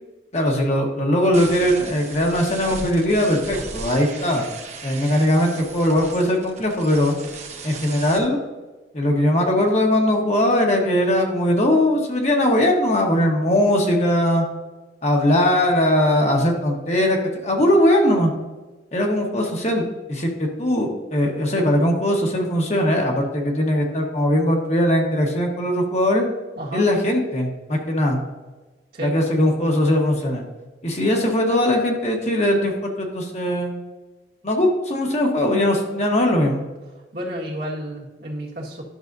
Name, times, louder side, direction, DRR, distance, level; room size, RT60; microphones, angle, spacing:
voice 1, 0.3-4.4 4.8-7.2 7.6-8.4 8.9-14.5 15.0-18.3 18.9-26.2 26.7-28.2 29.0-30.5 30.8-33.8 34.4-36.6, left 1 dB, 40° left, 0 dB, 1.2 m, -20 dB
sound 1, 1.3-8.2, right 4 dB, 40° right, 0.9 m, -37 dB
voice 2, 26.6-26.9 28.9-29.1 37.1-38.8, right 1 dB, 60° right, -4 dB, 1.7 m, -31 dB
11.0 x 6.5 x 2.6 m, 1.2 s
head